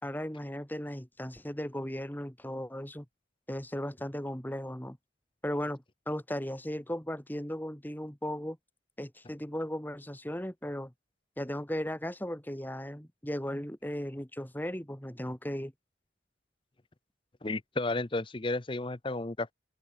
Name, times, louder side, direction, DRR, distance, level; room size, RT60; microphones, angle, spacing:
voice 1, 0.0-3.1 3.5-5.0 5.4-8.6 9.0-10.9 11.4-15.7, equal, 10° left, 2.0 m, -36 dB
voice 2, 17.4-19.5, left 2 dB, 25° left, 0.8 m, -32 dB
open air
head